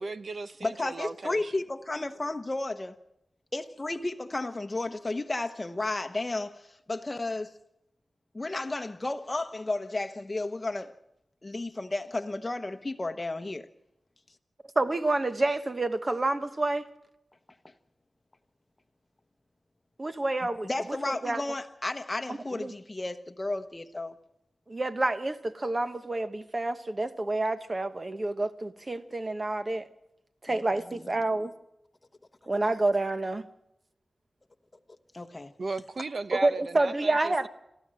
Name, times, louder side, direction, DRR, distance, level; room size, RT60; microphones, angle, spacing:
voice 1, 0.0-1.5 35.6-37.5, right 3 dB, 60° right, 0.9 m, -36 dB
voice 2, 0.6-3.0 3.5-7.6 8.3-11.0 11.4-13.7 20.6-24.1 30.5-30.6 30.9-31.1 35.1-35.5, left 2 dB, 25° left, 1.0 m, -33 dB
voice 3, 14.8-16.9 20.0-20.7 21.1-21.4 22.3-22.7 24.7-29.9 30.4-31.5 32.5-33.5 36.3-37.5, right 2 dB, 35° right, 1.2 m, -28 dB
26.0 x 14.0 x 7.7 m
wide cardioid pair, 105°, 0 cm